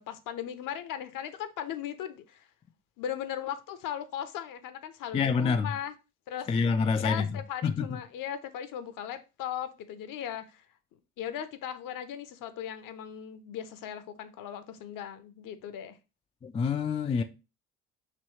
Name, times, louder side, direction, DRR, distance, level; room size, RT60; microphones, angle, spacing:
voice 1, 0.0-2.5 3.0-5.9 6.3-6.5 7.0-10.7 11.2-16.0, left 10 dB, 55° left, 0.7 m, -38 dB
voice 2, 5.1-5.7 6.5-7.9 16.4-17.2, left 5 dB, 15° left, 0.3 m, -27 dB
3.1 x 3.0 x 4.2 m
hypercardioid pair, 55°, 40 cm